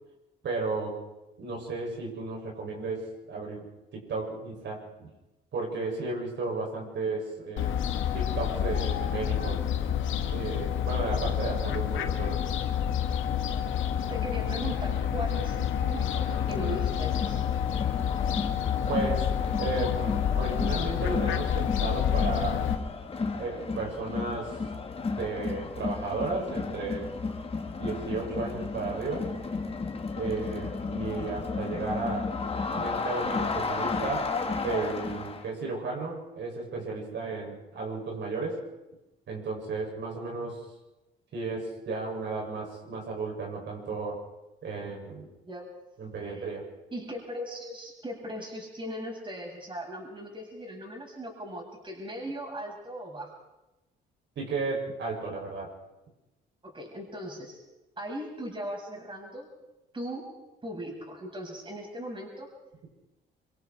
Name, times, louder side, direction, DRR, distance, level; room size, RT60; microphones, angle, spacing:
voice 1, 0.4-1.0 1.4-5.1 5.5-7.8 8.1-9.6 10.3-12.4 18.9-22.7 23.4-24.6 25.2-27.2 27.8-29.3 30.1-32.4 32.7-34.3 34.6-38.6 39.3-40.6 41.3-44.2 44.6-45.3 46.0-46.7 54.4-55.7, right 3 dB, 65° right, -1 dB, 7.8 m, -34 dB
Fowl, 7.6-22.8, left 9 dB, 85° left, 1.9 m, -28 dB
voice 2, 14.1-17.4 45.4-45.7 46.2-46.4 46.9-53.3 56.6-57.6 58.0-59.5 59.9-60.3 60.6-62.5, equal, 25° right, 0 dB, 7.5 m, -38 dB
Crowd, 16.0-35.5, left 4 dB, 30° left, 2.6 m, -34 dB
27.0 x 23.5 x 4.8 m, 1.0 s
cardioid pair, 90°, 20 cm